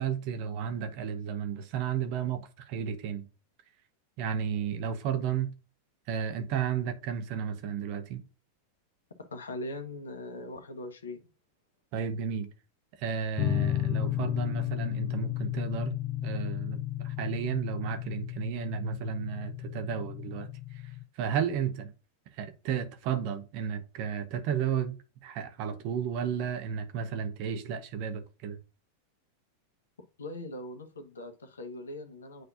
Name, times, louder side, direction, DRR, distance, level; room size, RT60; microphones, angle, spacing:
voice 1, 0.0-3.3 4.2-5.5 6.1-8.2 11.9-12.5 13.0-16.0 16.2-20.9 21.1-21.9 22.4-28.6, right 7 dB, 45° right, 1.2 m, -33 dB
voice 2, 9.3-11.2 30.2-32.5, left 1 dB, 70° left, 1.3 m, -40 dB
sound 1, 13.4-21.0, left 14 dB, 35° left, 0.5 m, -33 dB
9.3 x 4.0 x 2.6 m
figure-of-eight pair, 90°, 0 cm